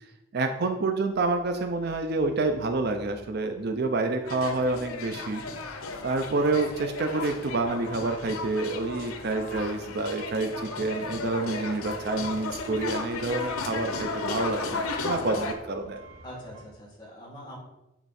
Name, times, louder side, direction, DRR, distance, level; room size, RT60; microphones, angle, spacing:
voice 1, 0.3-5.4 6.0-16.0, right 3 dB, 50° right, 6 dB, 0.5 m, -28 dB
sound 1, 1.1-16.6, right 3 dB, 80° right, 1.7 m, -51 dB
sound 2, 4.3-15.5, left 3 dB, 85° left, 0.8 m, -34 dB
voice 2, 16.2-17.6, equal, 20° left, -5 dB, 2.2 m, -43 dB
8.8 x 3.6 x 4.2 m, 0.94 s
head